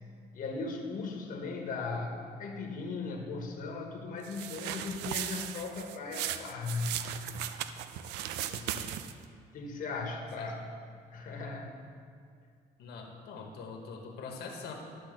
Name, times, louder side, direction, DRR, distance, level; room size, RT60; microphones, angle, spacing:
voice 1, 0.3-6.9 9.5-10.6 11.1-11.7, left 4 dB, 50° left, 1 dB, 1.3 m, -37 dB
sound 1, 4.2-9.2, right 11 dB, 90° right, 0.5 m, -37 dB
voice 2, 8.5-8.9 10.4-10.5 12.8-14.7, left 5 dB, 75° left, 2 dB, 1.3 m, -44 dB
12.0 x 4.3 x 6.6 m, 2.2 s
cardioid pair, 110°, 17 cm